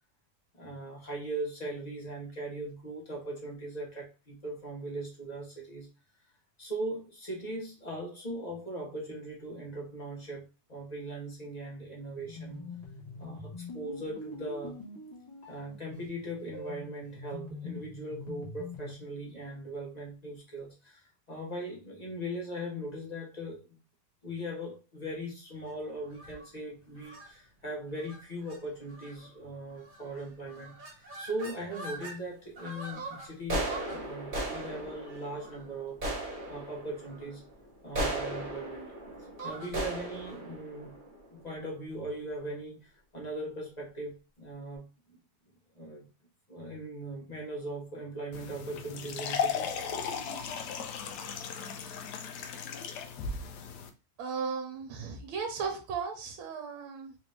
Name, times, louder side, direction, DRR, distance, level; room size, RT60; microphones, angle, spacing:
voice 1, 0.5-5.9 6.6-12.7 13.2-14.8 15.5-23.8 24.2-37.4 37.8-38.9 39.2-41.0 41.3-45.2 45.7-46.1 46.5-49.7, right 1 dB, 55° left, -2 dB, 0.4 m, -39 dB
sound 1, 12.2-19.0, left 3 dB, 30° left, 0.7 m, -44 dB
sound 2, 26.1-26.5 27.0-27.3 28.0-28.2 28.5-28.6 28.9-29.3 29.9-30.2 30.5-32.2 32.6-41.7, right 1 dB, 30° right, 1.2 m, -38 dB
sound 3, 48.3-53.9, left 6 dB, 80° left, 0.9 m, -36 dB
voice 2, 54.2-57.2, right 5 dB, 75° right, 4 dB, 1.6 m, -36 dB
4.0 x 2.6 x 3.2 m, 0.32 s
omnidirectional pair, 2.3 m